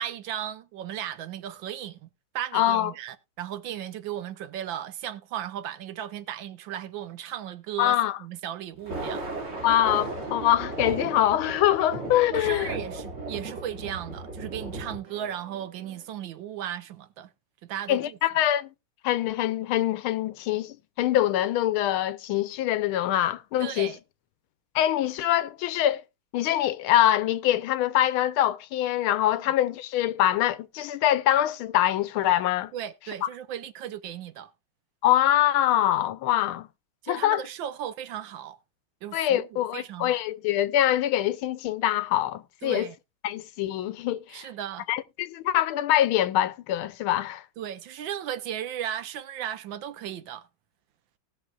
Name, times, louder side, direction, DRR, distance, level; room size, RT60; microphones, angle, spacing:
voice 1, 0.0-2.1 2.3-9.3 12.3-17.3 17.6-18.2 23.6-24.0 32.7-34.5 37.0-38.6 39.0-40.2 42.6-43.0 44.3-44.9 47.6-50.5, right 10 dB, 75° right, 1.3 m, -36 dB
voice 2, 2.5-2.9 7.8-8.2 9.6-12.7 17.9-18.7 19.0-23.9 24.7-26.0 26.3-32.7 33.2-33.3 35.0-36.7 37.1-37.4 39.1-42.9 43.2-44.5 44.9-47.4, left 12 dB, 80° left, 1.5 m, -24 dB
Thunder, 8.7-15.0, right 2 dB, 30° right, 2.5 m, -35 dB
sound 1, 10.7-16.1, right 5 dB, 90° right, 2.8 m, -50 dB
18.5 x 6.3 x 2.3 m
omnidirectional pair, 2.3 m